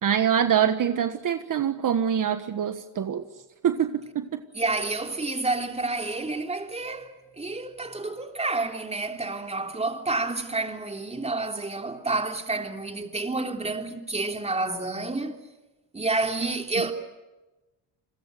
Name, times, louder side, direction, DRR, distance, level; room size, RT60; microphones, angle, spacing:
voice 1, 0.0-3.2 3.6-4.4, right 9 dB, 50° right, 1.5 m, -24 dB
voice 2, 4.5-15.4 15.9-16.9, right 3 dB, 15° right, 3.2 m, -29 dB
30.0 x 22.5 x 8.0 m
cardioid pair, 105°, 42 cm